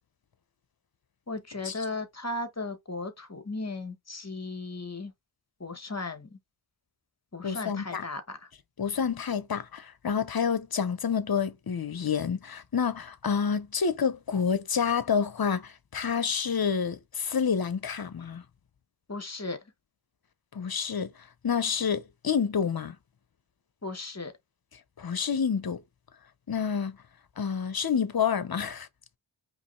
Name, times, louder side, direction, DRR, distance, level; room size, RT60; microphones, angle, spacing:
voice 1, 1.3-5.1 5.6-6.3 7.3-8.2 19.1-19.6 23.8-24.3, left 2 dB, 35° left, 1.4 m, -36 dB
voice 2, 7.4-8.0 8.8-18.4 20.5-21.1 21.4-23.0 25.0-25.8 26.5-27.0 27.4-28.9, left 6 dB, 50° left, 0.9 m, -28 dB
5.0 x 3.2 x 3.2 m
cardioid pair, 45°, 47 cm